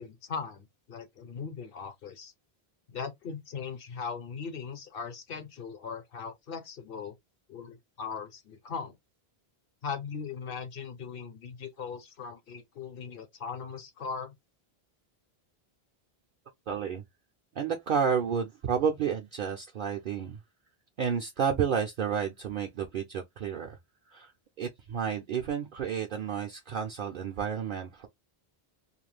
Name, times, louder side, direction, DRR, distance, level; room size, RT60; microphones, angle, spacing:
voice 1, 0.0-2.3 2.9-7.2 7.5-9.0 9.8-14.3, left 6 dB, 65° left, 1.0 m, -39 dB
voice 2, 16.7-17.0 17.6-20.4 21.0-23.8 24.1-24.3 24.6-28.1, right 7 dB, 60° right, 0.7 m, -31 dB
2.4 x 2.2 x 3.2 m
omnidirectional pair, 1.0 m